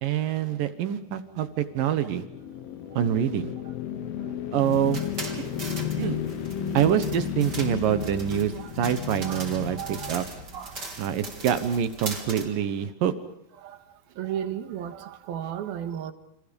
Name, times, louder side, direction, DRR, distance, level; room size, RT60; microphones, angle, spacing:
voice 1, 0.0-2.2 3.0-3.5 4.5-5.0 5.4-6.2 6.7-10.2 11.0-13.1, right 9 dB, 70° right, 2.8 m, -26 dB
sound 1, 1.5-10.8, left 9 dB, 85° left, 3.1 m, -34 dB
sound 2, 4.6-12.5, right 3 dB, 30° right, 3.9 m, -40 dB
voice 2, 9.7-10.1 10.5-10.8 13.6-13.8 14.2-16.1, right 10 dB, 90° right, 3.4 m, -34 dB
29.5 x 28.5 x 5.3 m
omnidirectional pair, 4.2 m